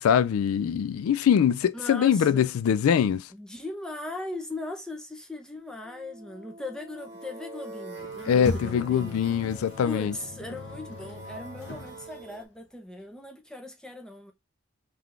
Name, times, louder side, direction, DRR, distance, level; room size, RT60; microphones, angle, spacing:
voice 1, 0.0-3.3 8.3-10.1, left 8 dB, 90° left, 0.3 m, -23 dB
voice 2, 1.7-2.5 3.3-9.2 9.7-14.3, left 2 dB, 5° left, 0.7 m, -39 dB
sound 1, 5.8-12.4, right 2 dB, 15° right, 1.5 m, -44 dB
Sliding door, 8.0-12.4, left 2 dB, 55° left, 0.8 m, -39 dB
3.9 x 3.3 x 3.3 m
head